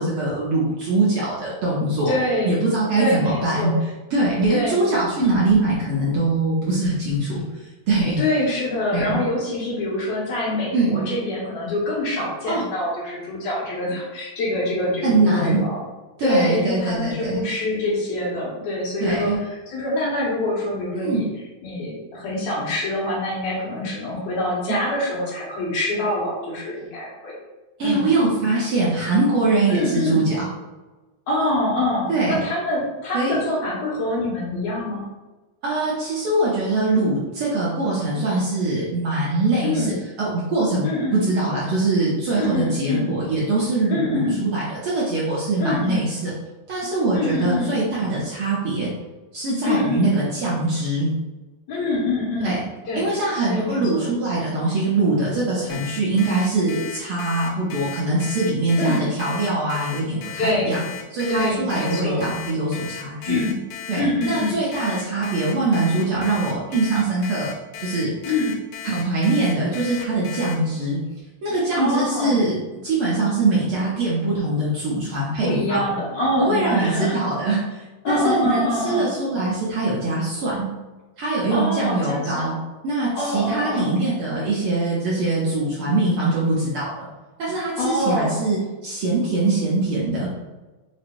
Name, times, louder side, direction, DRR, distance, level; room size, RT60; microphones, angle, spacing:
voice 1, 0.0-2.1 2.4-8.2 8.9-9.2 10.7-11.0 12.5-12.6 15.0-15.6 16.2-17.4 19.0-19.4 20.9-21.2 27.8-30.5 32.1-32.4 33.1-33.3 35.6-40.9 41.1-46.3 46.7-48.9 49.3-51.1 52.4-52.6 52.9-60.8 61.1-63.4 63.9-67.5 67.8-68.1 68.8-71.0 71.4-75.8 76.4-80.7 81.2-82.6 82.8-87.1 87.4-90.3, right 2 dB, 75° right, -7 dB, 1.3 m, -22 dB
voice 2, 2.1-2.5 3.0-3.8 4.5-4.8 5.2-5.4 8.2-15.8 16.2-21.3 21.6-27.4 27.8-28.2 29.7-30.2 31.3-35.1 39.6-40.0 40.8-41.2 42.4-43.1 43.9-44.4 45.6-46.1 47.1-47.8 49.6-50.1 51.7-52.6 52.9-53.1 53.5-54.1 58.8-59.0 60.4-60.9 61.3-62.3 63.3-63.6 64.0-64.6 68.2-68.6 71.7-72.4 75.4-77.2 78.0-79.1 81.5-82.5 83.2-83.9 87.8-88.4, left 1 dB, 65° left, -7 dB, 2.3 m, -25 dB
Alarm, 55.7-70.5, left 9 dB, 90° left, 2.0 m, -36 dB
5.1 x 2.0 x 4.5 m, 1.2 s
omnidirectional pair, 3.4 m